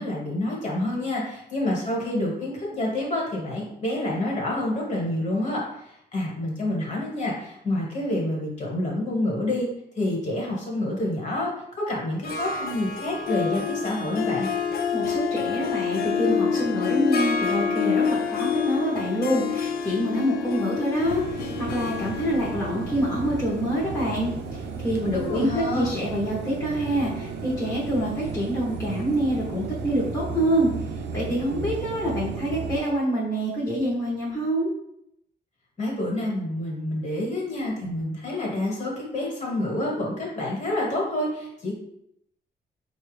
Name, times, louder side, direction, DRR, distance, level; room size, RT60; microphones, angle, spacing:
voice 1, 0.0-9.7 10.0-11.5 11.8-14.5 25.1-25.9 35.8-41.7, left 1 dB, 45° left, -3 dB, 1.4 m, -28 dB
Harp, 12.2-25.8, left 6 dB, 60° left, 0.4 m, -28 dB
voice 2, 14.9-34.7, equal, 20° left, -6 dB, 0.9 m, -26 dB
sound 1, 21.0-32.8, right 5 dB, 75° right, 0.5 m, -34 dB
4.6 x 2.3 x 3.2 m, 0.78 s
cardioid pair, 125°, 18 cm